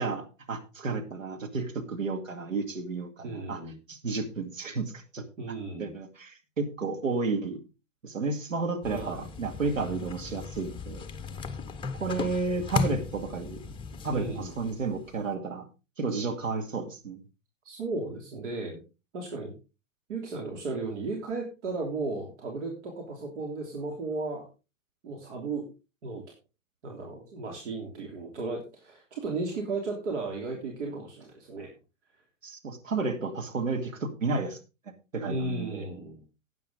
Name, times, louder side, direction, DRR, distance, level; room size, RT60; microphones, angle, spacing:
voice 1, 0.0-3.6 3.9-5.3 5.8-7.6 8.0-11.0 12.0-13.6 14.0-15.6 16.0-17.2 32.4-34.6 35.1-35.9, right 4 dB, 80° right, 5 dB, 2.2 m, -32 dB
voice 2, 3.2-3.8 5.4-5.9 8.9-9.3 14.1-14.6 17.6-18.8 19.1-19.5 20.1-24.5 25.0-25.7 26.0-26.2 26.8-31.7 35.2-36.2, right 3 dB, 60° right, 1 dB, 3.2 m, -35 dB
sound 1, 8.8-15.3, left 4 dB, 15° left, 1.0 m, -36 dB
12.5 x 9.2 x 3.8 m, 0.30 s
figure-of-eight pair, 100°, 39 cm